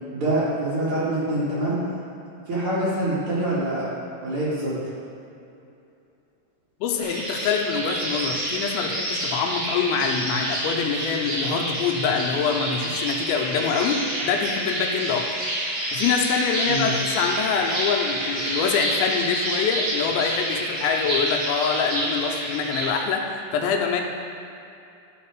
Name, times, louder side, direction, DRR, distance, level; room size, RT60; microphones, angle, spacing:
voice 1, 0.1-1.8 2.5-3.9 4.2-4.7 16.6-16.9, right 1 dB, 65° right, -9 dB, 1.4 m, -25 dB
voice 2, 6.8-15.3 15.9-24.0, left 6 dB, 85° left, 2 dB, 2.9 m, -25 dB
sound 1, 7.0-22.9, right 1 dB, 45° right, 2.2 m, -28 dB
12.0 x 4.1 x 4.6 m, 2.7 s
omnidirectional pair, 5.4 m